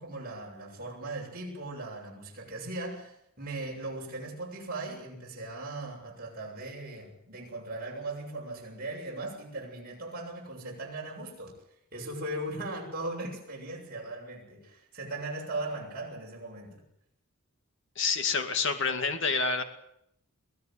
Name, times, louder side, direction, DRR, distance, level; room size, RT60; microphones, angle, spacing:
voice 1, 0.0-11.5 11.9-16.8, right 2 dB, 40° right, 7.3 m, -38 dB
voice 2, 18.0-19.6, left 4 dB, 55° left, 2.3 m, -28 dB
23.0 x 16.0 x 9.2 m
head